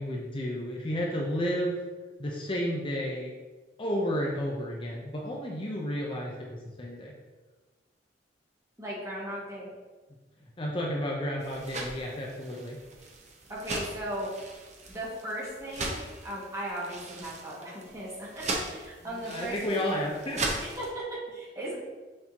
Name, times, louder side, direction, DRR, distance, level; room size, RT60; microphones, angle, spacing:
voice 1, 0.0-1.8 2.2-3.3 3.8-7.1 10.6-12.8 19.0-20.4, equal, 30° left, -2 dB, 0.7 m, -32 dB
voice 2, 8.8-9.7 13.5-14.3 14.9-19.9 20.6-21.8, right 1 dB, 20° right, -7 dB, 2.0 m, -37 dB
sound 1, 11.4-20.9, right 2 dB, 40° right, 0.9 m, -39 dB
6.5 x 5.5 x 2.9 m, 1.3 s
head